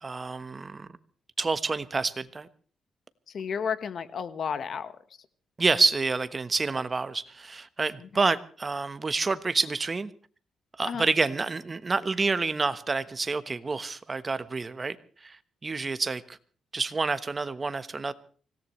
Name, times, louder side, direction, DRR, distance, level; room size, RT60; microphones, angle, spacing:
voice 1, 0.0-0.9 1.4-2.5 5.6-10.1 10.8-15.0 15.2-16.4 16.7-18.1, right 4 dB, 30° right, 1.2 m, -28 dB
voice 2, 3.3-4.9 10.8-11.1, left 6 dB, 55° left, 1.3 m, -32 dB
25.0 x 17.5 x 3.2 m
cardioid pair, 95°, 0 cm